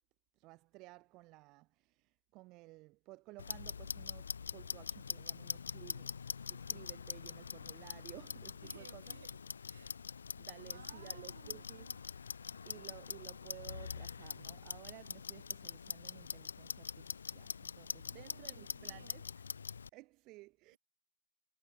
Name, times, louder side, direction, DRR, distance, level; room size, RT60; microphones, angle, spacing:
voice 1, 0.4-9.0 10.4-11.9 12.6-19.2 19.9-20.8, right 22 dB, 30° right, 1.9 m, -56 dB
Clock, 3.4-19.9, left 6 dB, 85° left, 1.3 m, -44 dB
voice 2, 8.6-10.0 10.6-12.0 18.1-19.2, right 8 dB, 65° right, 5.2 m, -59 dB
hypercardioid pair, 150°, 0 cm